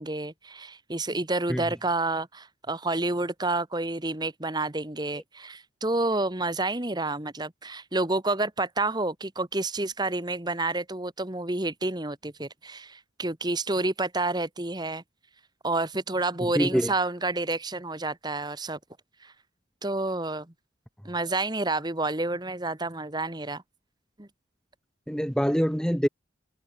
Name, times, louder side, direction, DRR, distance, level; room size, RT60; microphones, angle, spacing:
voice 1, 0.0-15.0 15.6-18.8 19.2-19.3 19.8-20.5 21.0-23.6 24.2-24.3, right 2 dB, 20° right, 1.5 m, -29 dB
voice 2, 16.4-16.9 25.1-26.1, equal, 5° left, 5.3 m, -25 dB
head